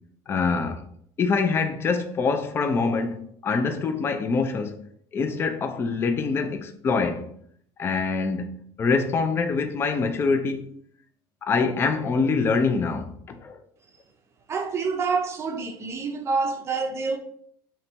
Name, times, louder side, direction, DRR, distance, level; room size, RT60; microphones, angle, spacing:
voice 1, 0.3-0.8 1.2-4.8 5.1-7.3 7.8-10.7 11.4-13.6, left 4 dB, 20° left, 0.4 m, -25 dB
voice 2, 14.5-17.2, right 4 dB, 25° right, 0.5 m, -27 dB
3.3 x 2.9 x 4.3 m
cardioid pair, 160°, 11 cm